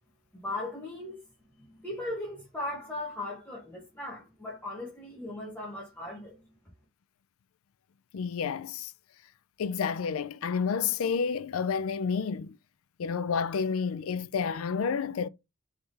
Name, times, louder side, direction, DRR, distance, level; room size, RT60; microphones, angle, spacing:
voice 1, 0.4-1.2 1.6-6.4, left 2 dB, 10° left, 1.1 m, -38 dB
voice 2, 8.1-8.9 9.6-12.6 13.0-15.3, left 6 dB, 70° left, 0.4 m, -30 dB
3.6 x 3.4 x 3.9 m
head